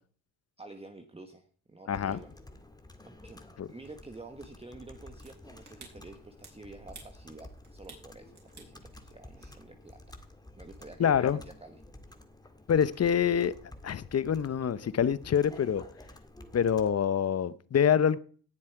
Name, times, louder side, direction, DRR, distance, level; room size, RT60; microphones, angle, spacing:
voice 1, 0.6-2.3 3.0-3.4 3.7-10.0 10.6-11.8, right 2 dB, 15° right, 1.3 m, -49 dB
voice 2, 1.9-2.2 3.6-3.7 11.0-11.4 12.7-13.5 13.8-15.8 16.5-18.2, left 8 dB, 35° left, 0.8 m, -26 dB
Computer keyboard, 1.9-16.9, left 1 dB, 10° left, 1.8 m, -51 dB
sound 1, 4.9-9.9, right 4 dB, 40° right, 5.8 m, -55 dB
18.0 x 7.4 x 4.6 m
supercardioid pair, 80°, 44 cm